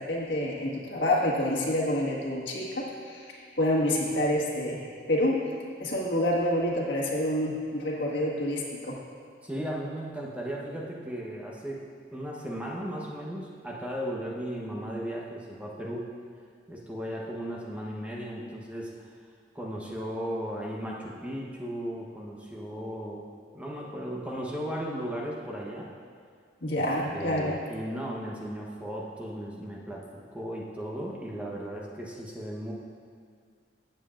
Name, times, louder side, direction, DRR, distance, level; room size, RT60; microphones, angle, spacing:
voice 1, 0.0-5.5 5.8-9.0 26.6-27.6, left 1 dB, 70° left, -4 dB, 1.7 m, -28 dB
voice 2, 9.4-16.1 16.7-19.1 19.5-23.2 23.5-25.9 26.7-26.8 27.1-30.0 30.3-32.7, equal, 5° right, -3 dB, 1.0 m, -36 dB
15.5 x 7.5 x 2.5 m, 2.1 s
head